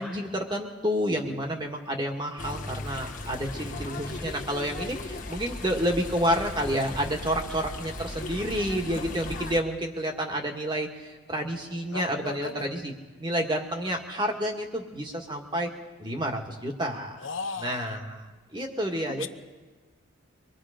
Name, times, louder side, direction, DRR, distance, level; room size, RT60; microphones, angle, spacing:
voice 1, 0.0-12.9 13.2-15.7 16.0-17.3 17.6-18.3 18.5-19.3, equal, 25° right, 2 dB, 1.8 m, -29 dB
sound 1, 2.4-9.6, left 2 dB, 40° left, 1.5 m, -37 dB
voice 2, 11.9-12.7 17.2-17.9 19.1-19.3, left 4 dB, 75° left, 10 dB, 0.9 m, -36 dB
24.0 x 21.0 x 5.1 m, 1.3 s
head